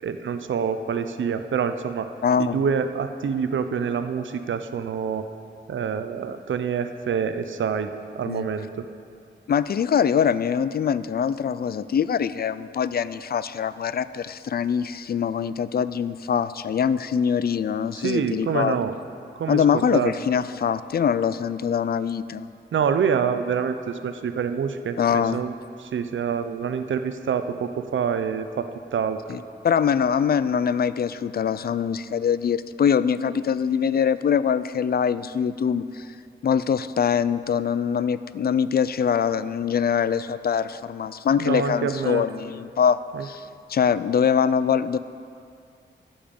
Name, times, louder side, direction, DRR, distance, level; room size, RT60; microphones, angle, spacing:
voice 1, 0.0-2.1 2.4-5.2 5.7-7.9 8.1-8.9 17.9-18.9 19.4-20.1 22.7-29.2 41.4-42.3 43.1-43.3, right 6 dB, 75° right, 9 dB, 0.6 m, -26 dB
voice 2, 2.2-2.6 8.3-8.4 9.5-18.8 19.5-22.5 25.0-25.4 29.3-36.1 36.4-45.0, left 7 dB, 50° left, 15 dB, 0.4 m, -23 dB
13.5 x 7.1 x 5.3 m, 2.4 s
wide cardioid pair, 85°, 20 cm